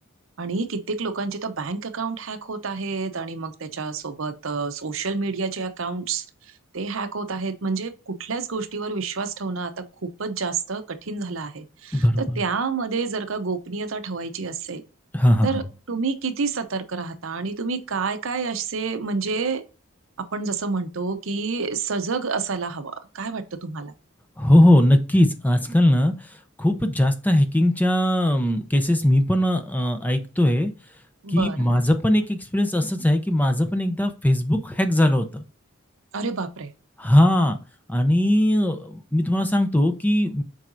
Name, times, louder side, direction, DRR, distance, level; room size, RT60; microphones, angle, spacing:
voice 1, 0.4-6.2 6.7-14.8 15.4-15.6 15.9-19.6 20.2-23.9 31.2-31.7 36.1-36.7, right 4 dB, 70° right, 0.8 m, -29 dB
voice 2, 11.9-12.4 15.1-15.5 24.4-26.1 26.6-30.7 31.3-35.4 37.0-37.6 37.9-40.4, left 1 dB, 10° left, 0.7 m, -20 dB
7.5 x 4.8 x 2.6 m
head